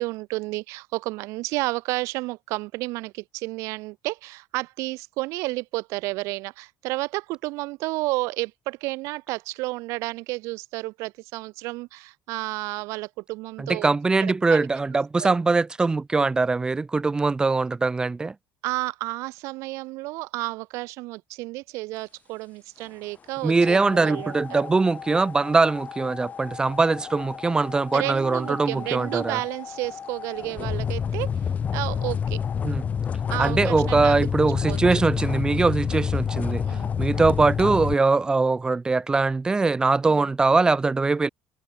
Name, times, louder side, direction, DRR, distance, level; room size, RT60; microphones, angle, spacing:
voice 1, 0.0-13.9 14.2-14.6 15.2-15.3 18.6-24.6 27.9-31.3 31.7-32.4 33.3-34.3 34.7-35.0 36.6-37.0 40.0-40.2, right 22 dB, 80° right, 0.4 m, -31 dB
voice 2, 13.6-18.3 23.4-29.4 32.6-32.8 33.4-36.6 37.0-41.3, right 3 dB, 15° right, 0.6 m, -22 dB
sound 1, 23.6-37.9, left 7 dB, 30° left, 0.4 m, -29 dB
cardioid pair, 120°, 5 cm